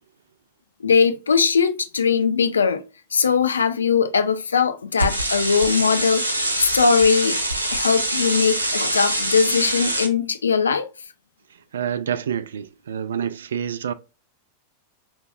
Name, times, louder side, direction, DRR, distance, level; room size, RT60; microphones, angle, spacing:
voice 1, 0.8-2.8 3.1-7.4 7.7-10.9, left 5 dB, 75° left, 0.5 m, -20 dB
sound 1, 5.0-10.1, right 1 dB, 80° right, 0.8 m, -24 dB
voice 2, 11.7-13.9, right 8 dB, 65° right, 0.4 m, -27 dB
4.9 x 3.1 x 2.5 m
figure-of-eight pair, 90°, 0 cm